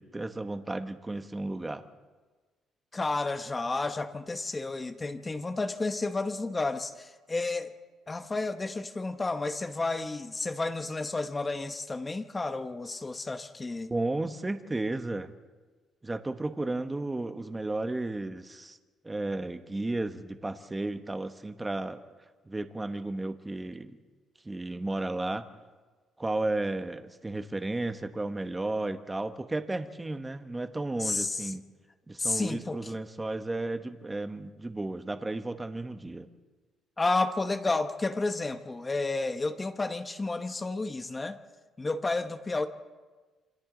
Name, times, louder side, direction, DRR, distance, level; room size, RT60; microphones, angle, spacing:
voice 1, 0.0-1.8 13.9-15.3 16.0-18.8 19.0-22.0 22.5-24.0 24.4-25.5 26.2-31.6 32.1-36.3, right 2 dB, 15° right, 8 dB, 1.1 m, -33 dB
voice 2, 2.9-7.7 8.1-13.9 31.0-31.5 32.2-32.9 37.0-41.4 41.8-42.7, left 3 dB, 20° left, 8 dB, 1.0 m, -31 dB
27.5 x 26.0 x 3.9 m, 1.3 s
cardioid pair, 130°, 0 cm